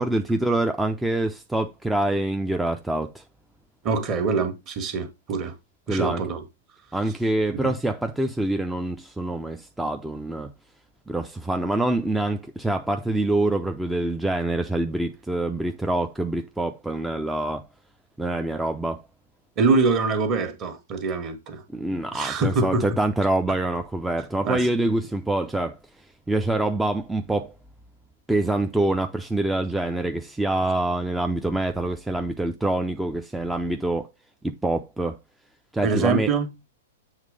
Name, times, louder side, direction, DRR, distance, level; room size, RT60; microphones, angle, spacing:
voice 1, 0.0-3.2 5.9-6.2 6.9-10.5 11.1-17.7 18.2-19.0 21.7-25.8 26.3-27.5 28.3-34.1 34.4-35.2 35.7-36.3, right 2 dB, 5° right, 0.4 m, -25 dB
voice 2, 3.8-5.5 5.9-6.4 7.5-7.7 19.6-21.6 22.1-22.8 24.4-24.7 35.8-36.5, right 4 dB, 35° right, 1.5 m, -24 dB
7.3 x 3.2 x 5.0 m
hypercardioid pair, 115°, 0 cm